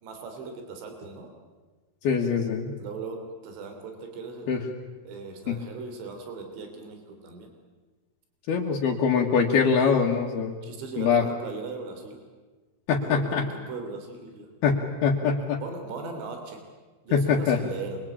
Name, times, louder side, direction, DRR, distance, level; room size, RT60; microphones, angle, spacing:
voice 1, 0.0-1.3 2.8-4.5 5.1-7.5 10.6-12.2 13.0-14.5 15.6-16.6 17.1-18.0, right 4 dB, 75° right, 5 dB, 5.6 m, -38 dB
voice 2, 2.0-2.7 4.5-4.6 5.5-5.6 8.5-10.6 11.0-11.3 12.9-13.5 14.6-15.6 17.1-17.6, left 6 dB, 65° left, 0 dB, 3.4 m, -23 dB
27.0 x 23.0 x 8.8 m, 1.3 s
omnidirectional pair, 5.3 m